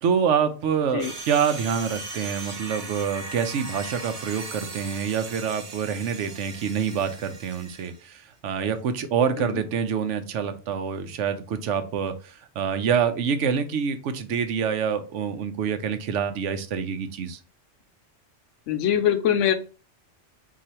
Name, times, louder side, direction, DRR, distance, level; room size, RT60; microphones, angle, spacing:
voice 1, 0.0-17.4, right 7 dB, 80° right, 9 dB, 1.0 m, -26 dB
sound 1, 1.0-8.0, right 2 dB, 40° right, 0.7 m, -38 dB
voice 2, 18.7-19.5, left 10 dB, 80° left, 7 dB, 0.9 m, -23 dB
4.0 x 2.7 x 4.2 m, 0.35 s
omnidirectional pair, 1.2 m